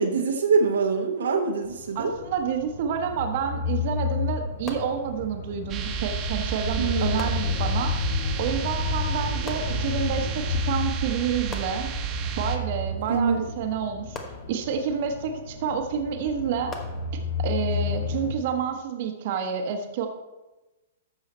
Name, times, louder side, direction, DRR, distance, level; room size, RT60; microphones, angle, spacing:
voice 1, 0.0-2.2 6.8-7.3 13.1-13.4, right 5 dB, 70° right, 2 dB, 1.1 m, -24 dB
sound 1, 1.6-18.3, left 5 dB, 80° left, 2.9 m, -31 dB
voice 2, 1.9-7.9 8.4-11.9 12.4-14.2 14.5-16.8 17.4-20.1, right 7 dB, 50° right, 5 dB, 1.2 m, -29 dB
sound 2, 4.7-5.6 7.2-8.1 9.5-10.3 11.5-12.4 14.1-15.1 16.7-17.6, left 3 dB, 25° left, 1.2 m, -43 dB
sound 3, 5.7-12.6, right 8 dB, 30° right, 1.3 m, -31 dB
13.5 x 5.6 x 4.3 m, 1.1 s
hypercardioid pair, 115°, 0 cm